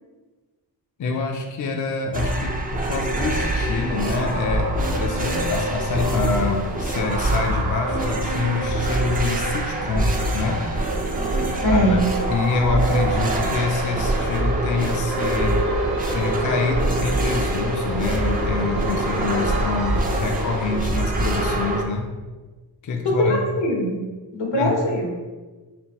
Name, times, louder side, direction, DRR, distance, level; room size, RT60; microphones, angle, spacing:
voice 1, 1.0-10.7 11.7-12.0 12.3-15.6 16.1-22.1 22.8-23.4 24.6-24.7, left 4 dB, 45° left, 3 dB, 0.4 m, -26 dB
sound 1, 2.1-21.8, right 1 dB, 20° right, 0.3 m, -25 dB
sound 2, 2.7-20.8, right 2 dB, 60° right, 0.7 m, -33 dB
voice 2, 11.6-12.0 23.0-24.0 24.3-25.1, left 1 dB, 85° left, -1 dB, 1.0 m, -21 dB
5.2 x 2.6 x 2.9 m, 1.3 s
wide cardioid pair, 150°, 42 cm